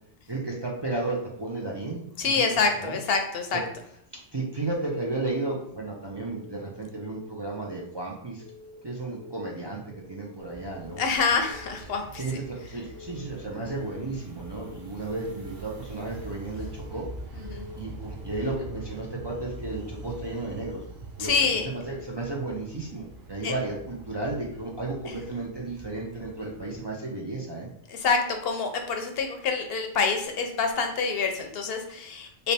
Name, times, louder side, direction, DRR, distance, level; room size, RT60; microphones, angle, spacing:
voice 1, 0.3-3.0 3.5-3.6 4.1-8.4 8.8-11.0 12.2-17.1 17.8-20.8 21.2-27.7 31.9-32.0, right 2 dB, 35° right, -3 dB, 0.5 m, -33 dB
voice 2, 2.2-3.6 11.0-12.2 17.4-17.7 21.2-21.7 23.4-23.5 27.9-32.5, left 5 dB, 70° left, 5 dB, 0.8 m, -26 dB
Keyboard (musical) / Alarm, 6.1-6.5 6.9-7.3 7.6-8.0 8.4-8.8 9.1-9.5 9.9-10.3 10.6-11.0 11.4-11.8 12.1-12.5 12.9-13.3 13.6-14.0 14.4-14.8 15.1-15.5 15.9-16.3 16.6-17.0 17.4-17.8 18.1-18.5 18.9-19.3 19.7-20.0 20.4-20.8 21.2-21.5 21.9-22.3, left 4 dB, 85° right, 1.9 m, -48 dB
sound 1, 10.4-26.7, right 2 dB, 55° right, 0.9 m, -43 dB
3.4 x 2.7 x 4.1 m, 0.75 s
omnidirectional pair, 1.1 m